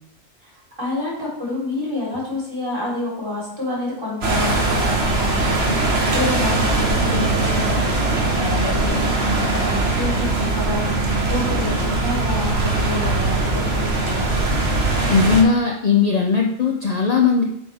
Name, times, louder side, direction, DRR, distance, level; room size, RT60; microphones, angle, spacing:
voice 1, 0.4-14.3, left 2 dB, 20° right, -7 dB, 3.6 m, -29 dB
sound 1, 4.2-15.4, right 2 dB, 50° right, 1.5 m, -20 dB
voice 2, 15.1-17.4, left 5 dB, 50° left, 1 dB, 0.4 m, -18 dB
8.1 x 6.2 x 3.5 m, 0.75 s
omnidirectional pair, 1.5 m